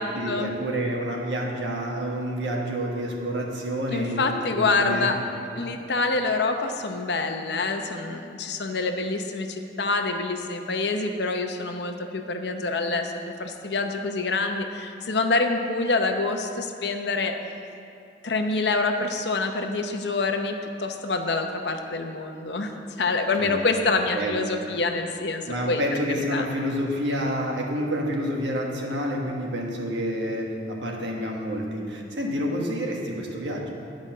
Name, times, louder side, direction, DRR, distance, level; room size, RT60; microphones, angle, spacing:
voice 1, 0.1-5.1 23.4-23.6 24.1-24.4 25.5-33.7, equal, 70° right, 0 dB, 1.4 m, -28 dB
voice 2, 3.9-5.2 5.5-17.4 18.2-25.8 26.3-26.5, left 3 dB, 60° left, 5 dB, 0.7 m, -26 dB
11.0 x 5.2 x 7.4 m, 2.6 s
head